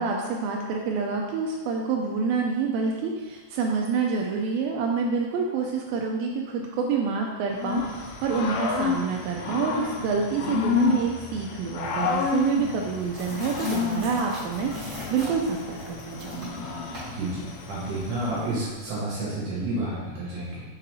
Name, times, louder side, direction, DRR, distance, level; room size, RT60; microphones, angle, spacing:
voice 1, 0.0-16.6, right 5 dB, 85° right, 0 dB, 2.1 m, -27 dB
Growling / Cricket, 7.5-18.5, left 5 dB, 80° left, 2.7 m, -30 dB
sound 1, 11.8-18.9, right 1 dB, 40° right, 1.1 m, -43 dB
voice 2, 17.1-20.6, right 2 dB, 65° right, -6 dB, 2.5 m, -30 dB
6.2 x 4.2 x 4.0 m, 1.3 s
omnidirectional pair, 4.8 m